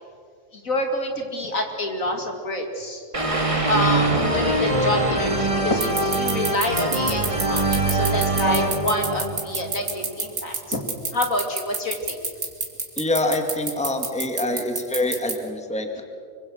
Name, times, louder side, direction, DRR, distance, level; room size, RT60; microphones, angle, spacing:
voice 1, 0.5-3.0 3.7-10.8 11.1-12.2, left 1 dB, 60° left, 4 dB, 2.9 m, -27 dB
sound 1, 3.1-10.1, right 2 dB, 20° right, 2.1 m, -23 dB
sound 2, 5.8-15.3, right 3 dB, 50° right, 3.1 m, -26 dB
voice 2, 13.0-16.0, left 1 dB, 5° left, 4 dB, 1.9 m, -25 dB
25.5 x 24.0 x 6.4 m, 2.2 s
omnidirectional pair, 1.6 m